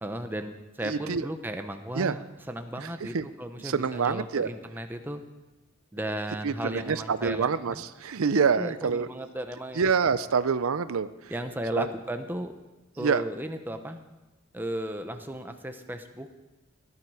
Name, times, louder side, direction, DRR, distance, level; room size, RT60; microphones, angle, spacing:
voice 1, 0.0-5.2 5.9-7.8 8.6-9.8 11.3-12.5 13.0-14.0 14.5-16.4, right 1 dB, 10° right, 6 dB, 0.8 m, -35 dB
voice 2, 0.8-1.3 1.9-2.2 2.8-3.3 3.6-4.5 6.4-9.1 9.7-11.3 11.7-11.9 13.0-13.2, right 5 dB, 85° right, 14 dB, 0.5 m, -26 dB
16.5 x 11.0 x 4.9 m, 1.1 s
head